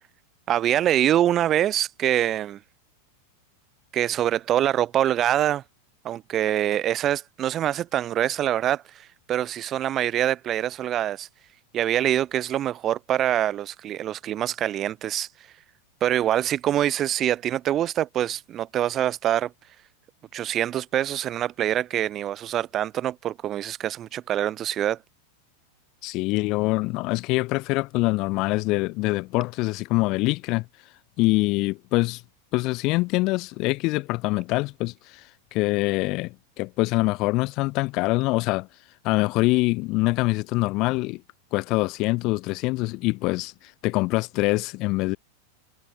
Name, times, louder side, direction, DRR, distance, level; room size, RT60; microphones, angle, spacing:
voice 1, 0.5-2.6 3.9-5.6 6.0-11.3 11.7-15.3 16.0-19.5 20.3-25.0, right 11 dB, 30° right, 0.6 m, -25 dB
voice 2, 26.0-30.6 31.2-32.2 32.5-35.2 35.5-38.7 39.0-41.2 41.5-43.5 43.8-45.2, left 22 dB, 40° left, 0.5 m, -24 dB
figure-of-eight pair, 90°, 0 cm